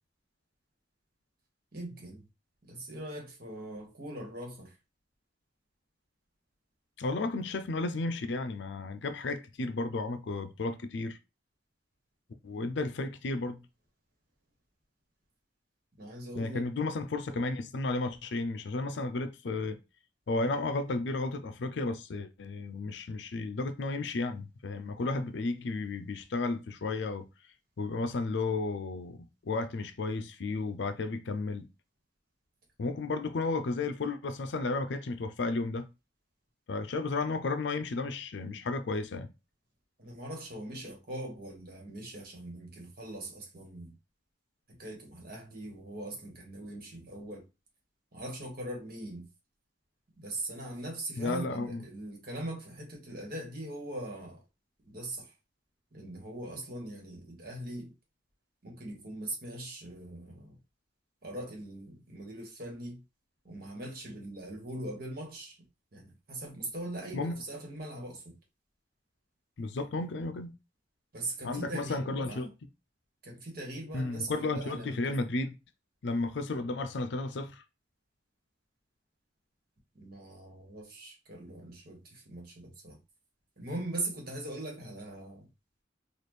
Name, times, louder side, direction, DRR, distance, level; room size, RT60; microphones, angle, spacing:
voice 1, 1.7-2.3 2.7-4.8 16.0-16.7 17.3-17.5 40.0-43.9 44.7-47.4 48.1-49.3 50.1-54.4 54.8-55.3 55.9-57.9 58.6-60.6 61.2-63.0 63.4-65.6 65.9-68.3 71.1-72.5 73.2-75.2 79.9-83.0 83.6-85.5, right 1 dB, 50° right, 1.5 m, -41 dB
voice 2, 7.0-11.2 12.4-13.6 16.4-19.8 20.3-27.3 27.8-31.7 32.8-35.9 36.7-39.3 51.2-51.8 67.1-67.4 69.6-70.6 71.4-72.5 73.9-75.5 76.0-77.6, left 3 dB, 65° left, 0.5 m, -33 dB
4.2 x 2.4 x 3.2 m
head